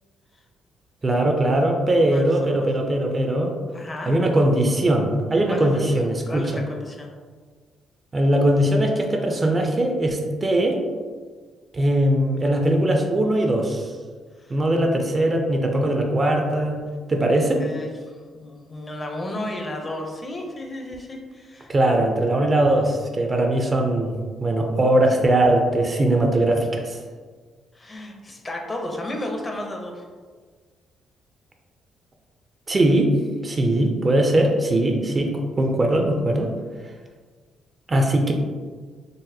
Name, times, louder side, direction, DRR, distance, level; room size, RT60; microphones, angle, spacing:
voice 1, 1.0-3.6 4.1-6.5 8.1-10.8 11.7-13.9 14.5-16.8 17.1-17.6 21.7-24.2 24.4-27.0 32.7-33.1 33.4-36.5 37.9-38.3, right 1 dB, 30° right, 2 dB, 0.4 m, -20 dB
voice 2, 2.1-2.7 3.7-4.1 5.5-5.8 6.3-7.1 14.4-14.6 17.6-21.7 27.7-30.1, left 1 dB, 25° left, 2 dB, 0.5 m, -33 dB
3.9 x 2.0 x 2.6 m, 1.5 s
cardioid pair, 90°, 0 cm